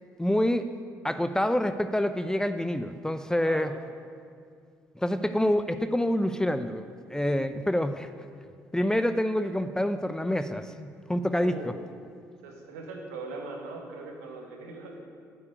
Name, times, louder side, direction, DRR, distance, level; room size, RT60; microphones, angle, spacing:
voice 1, 0.2-0.7 1.0-3.7 5.0-6.8 7.1-8.1 8.7-11.7, left 1 dB, 5° left, 10 dB, 0.7 m, -27 dB
voice 2, 3.4-3.7 11.4-11.7 12.4-14.9, right 3 dB, 75° right, 1 dB, 1.6 m, -40 dB
9.5 x 8.5 x 9.5 m, 2.2 s
figure-of-eight pair, 50°, 9 cm